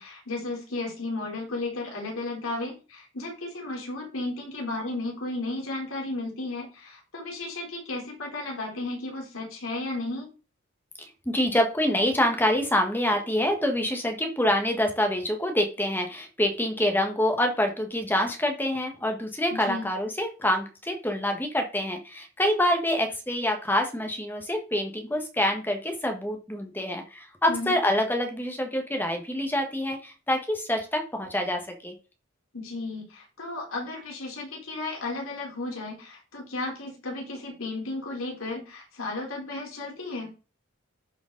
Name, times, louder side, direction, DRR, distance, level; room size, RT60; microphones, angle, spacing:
voice 1, 0.0-10.3 19.5-19.9 27.5-27.7 32.5-40.3, left 2 dB, 85° left, -1 dB, 3.8 m, -34 dB
voice 2, 11.0-31.9, left 1 dB, 10° left, 4 dB, 1.4 m, -26 dB
11.5 x 5.1 x 4.0 m, 0.32 s
head